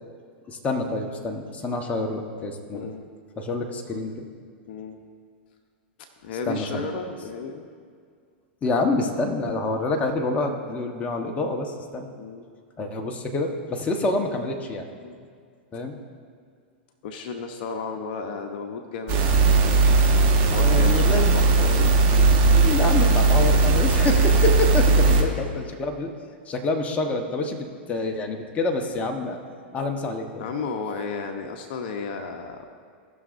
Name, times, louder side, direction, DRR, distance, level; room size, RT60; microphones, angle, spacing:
voice 1, 0.5-2.9 3.4-4.2 6.5-6.9 8.6-12.1 12.8-14.9 15.7-16.0 20.5-21.4 21.6-21.9 22.2-22.3 22.5-26.1 26.5-29.4 29.7-30.4, left 2 dB, 25° left, 3 dB, 1.1 m, -27 dB
voice 2, 2.7-3.1 4.7-5.0 6.2-7.7 12.2-12.5 15.0-15.3 17.0-19.8 20.4-22.0 25.0-25.4 30.4-32.7, left 4 dB, 60° left, 5 dB, 0.9 m, -33 dB
sound 1, 19.1-25.2, right 3 dB, 45° right, 1.5 m, -18 dB
18.5 x 6.3 x 2.6 m, 2.1 s
hypercardioid pair, 110°, 6 cm